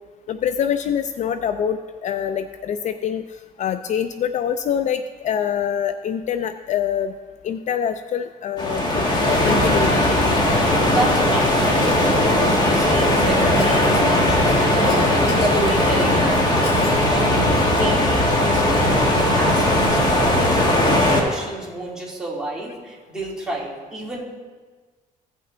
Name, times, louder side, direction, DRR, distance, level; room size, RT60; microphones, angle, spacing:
voice 1, 0.3-3.2 3.6-7.1 7.4-10.1, left 8 dB, 50° left, 10 dB, 0.4 m, -25 dB
sound 1, 8.6-21.2, left 1 dB, 30° left, 1.7 m, -18 dB
Cough, 10.6-10.9 11.8-12.5 13.6-13.9 14.8-16.0 16.6-17.0 17.5-17.6 19.5-19.6, left 2 dB, 70° left, 2.1 m, -31 dB
voice 2, 10.8-24.2, right 1 dB, 5° right, -5 dB, 2.6 m, -30 dB
16.0 x 5.5 x 3.8 m, 1.4 s
cardioid pair, 110°, 15 cm